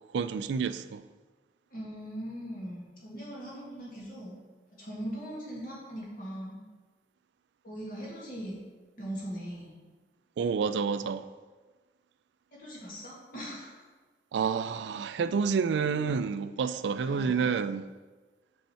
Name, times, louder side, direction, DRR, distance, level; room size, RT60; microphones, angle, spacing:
voice 1, 0.1-1.0 10.4-11.3 14.3-17.8, right 6 dB, 85° right, 0.3 m, -29 dB
voice 2, 1.7-4.4 4.7-6.6 7.6-8.6 9.0-9.7 12.5-13.9 17.0-17.5, equal, 50° left, 2.1 m, -40 dB
6.4 x 5.4 x 4.4 m
head